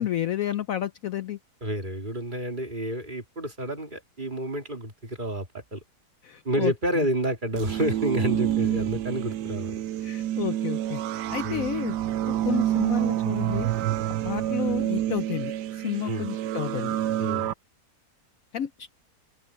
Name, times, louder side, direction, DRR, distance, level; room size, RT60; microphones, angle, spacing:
voice 1, 0.0-1.4 6.2-7.1 10.0-11.0 11.3-12.0 12.3-13.7 14.2-17.0 18.5-18.9, left 11 dB, 65° left, 1.0 m, -31 dB
voice 2, 1.6-5.8 6.4-9.8 11.4-11.7 16.0-16.3 17.2-17.5, right 1 dB, 30° right, 2.9 m, -29 dB
sound 1, 7.5-17.5, right 12 dB, 90° right, 1.3 m, -28 dB
open air
omnidirectional pair, 1.8 m